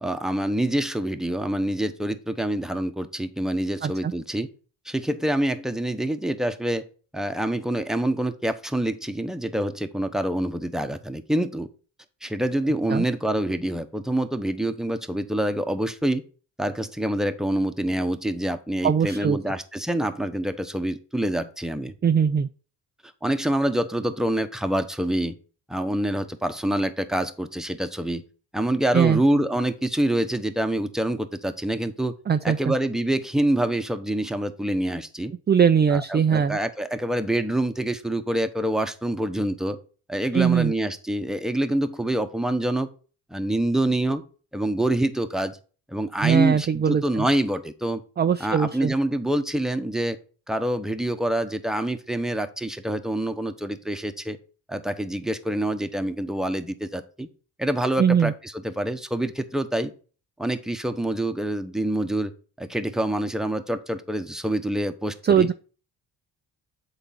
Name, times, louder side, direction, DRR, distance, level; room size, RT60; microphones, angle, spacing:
voice 1, 0.0-4.5 4.8-6.9 7.1-11.7 12.2-16.2 16.6-21.9 23.2-25.4 25.7-28.2 28.5-32.1 32.4-35.3 35.9-39.8 40.1-42.9 43.3-44.2 44.5-45.6 45.9-48.0 48.4-50.2 50.5-54.4 54.7-57.3 57.6-59.9 60.4-62.3 62.6-65.5, right 1 dB, ahead, 8 dB, 1.0 m, -26 dB
voice 2, 3.8-4.1 12.9-13.0 18.8-19.4 22.0-22.5 28.9-29.2 32.3-32.7 35.5-36.6 40.3-40.7 46.2-47.3 48.2-48.9 58.0-58.3 65.2-65.5, right 7 dB, 25° right, 9 dB, 0.5 m, -21 dB
8.1 x 4.0 x 5.7 m, 0.37 s
cardioid pair, 75°, 38 cm